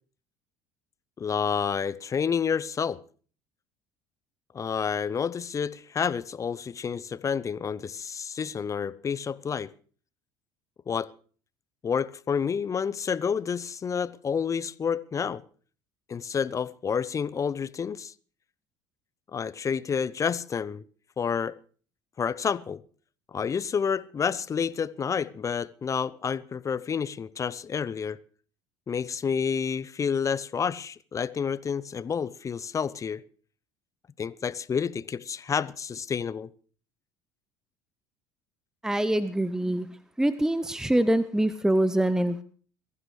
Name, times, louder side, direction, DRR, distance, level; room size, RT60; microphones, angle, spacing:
voice 1, 1.2-3.0 4.5-9.7 10.9-11.1 11.8-15.4 16.1-18.1 19.3-20.8 21.2-21.5 22.2-22.8 23.3-28.2 28.9-33.2 34.2-36.5, left 6 dB, 30° left, 0.7 m, -29 dB
voice 2, 38.8-39.9 40.2-42.4, right 1 dB, 5° right, 0.8 m, -24 dB
22.0 x 15.0 x 3.3 m
figure-of-eight pair, 60°, 11 cm